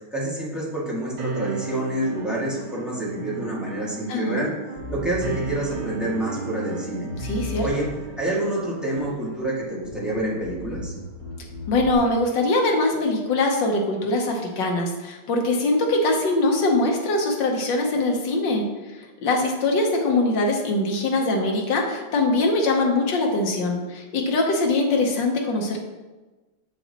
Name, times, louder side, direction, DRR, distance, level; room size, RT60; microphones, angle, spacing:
voice 1, 0.0-4.5 4.9-7.1 7.6-7.9 8.2-10.9, right 1 dB, ahead, -6 dB, 1.7 m, -28 dB
sound 1, 1.2-9.2, right 5 dB, 80° right, 2.2 m, -35 dB
voice 2, 4.1-4.5 7.2-7.6 11.7-18.6 19.0-25.8, left 2 dB, 65° left, 1 dB, 1.6 m, -22 dB
Bass guitar, 4.8-8.3 9.0-9.5 9.8-12.0, left 1 dB, 20° right, 2.6 m, -36 dB
7.1 x 7.0 x 2.9 m, 1.2 s
omnidirectional pair, 2.3 m